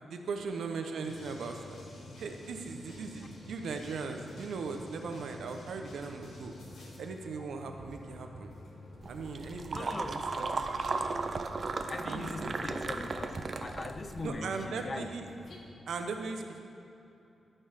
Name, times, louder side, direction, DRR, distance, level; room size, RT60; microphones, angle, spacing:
voice 1, 0.1-1.8 2.2-6.5 7.0-8.5 9.1-11.0 12.0-12.6 14.2-15.3 15.9-16.6, right 4 dB, 85° right, 5 dB, 0.9 m, -39 dB
sound 1, 1.0-7.0, left 1 dB, 85° left, 2.1 m, -52 dB
sound 2, 1.1-15.6, left 2 dB, 55° left, 1.4 m, -51 dB
sound 3, 9.0-14.3, right 3 dB, 40° right, 0.5 m, -35 dB
voice 2, 9.5-10.2 11.9-15.1, left 3 dB, 30° left, 9 dB, 0.5 m, -41 dB
13.5 x 5.5 x 5.8 m, 2.8 s
wide cardioid pair, 145°, 0 cm